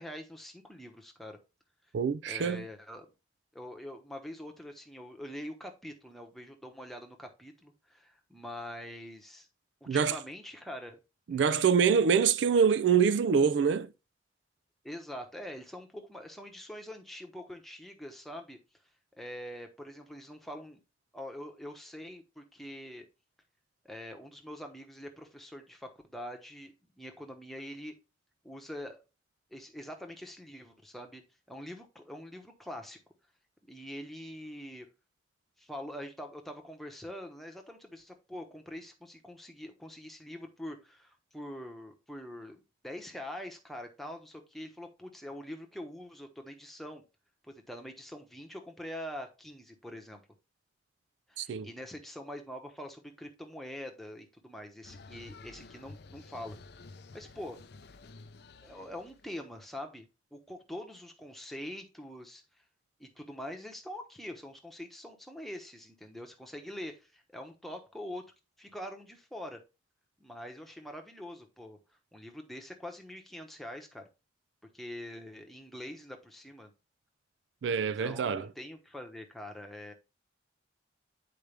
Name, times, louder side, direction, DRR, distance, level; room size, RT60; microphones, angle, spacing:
voice 1, 0.0-1.4 2.3-3.1 3.5-9.5 9.8-11.0 11.3-11.4 14.8-18.6 19.1-20.8 21.1-23.1 23.8-27.9 28.4-29.0 29.5-31.2 31.5-33.0 33.7-34.9 35.6-47.0 47.4-50.2 51.3-56.6 57.1-57.6 58.6-62.6 63.0-68.3 68.6-69.6 70.2-71.8 72.1-74.0 74.7-76.7 77.8-79.9, left 1 dB, ahead, 1.0 m, -44 dB
voice 2, 1.9-2.6 9.9-10.2 11.3-13.9 51.4-51.7 77.6-78.5, right 6 dB, 70° right, 0.3 m, -25 dB
sound 1, 54.8-59.8, left 3 dB, 55° left, 0.5 m, -51 dB
8.6 x 4.7 x 3.3 m
head